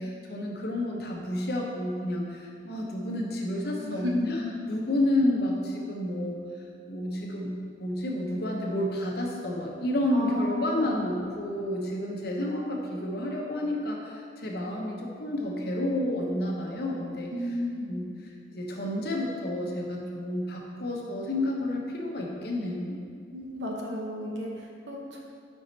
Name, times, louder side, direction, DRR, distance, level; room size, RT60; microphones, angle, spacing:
voice 1, 0.0-4.4 4.7-6.4 6.9-7.5 7.8-17.3 17.9-18.1 18.5-23.0, left 1 dB, 60° left, -1 dB, 0.8 m, -30 dB
voice 2, 3.8-4.4 10.1-10.9 17.3-17.9 23.3-25.3, left 1 dB, 90° right, -1 dB, 1.0 m, -33 dB
5.2 x 4.8 x 4.0 m, 2.2 s
head